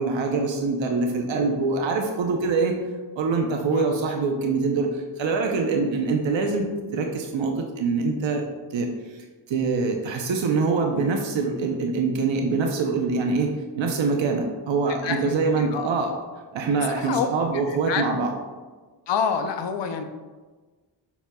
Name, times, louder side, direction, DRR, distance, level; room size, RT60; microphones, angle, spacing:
voice 1, 0.0-2.7 3.2-6.6 6.9-8.4 8.7-8.9 9.5-16.1 16.5-18.3, right 4 dB, 80° right, 2 dB, 0.8 m, -24 dB
voice 2, 15.0-16.2 16.8-18.0 19.1-20.0, left 6 dB, 70° left, 7 dB, 0.7 m, -28 dB
7.1 x 5.9 x 2.3 m, 1.3 s
cardioid pair, 85°, 44 cm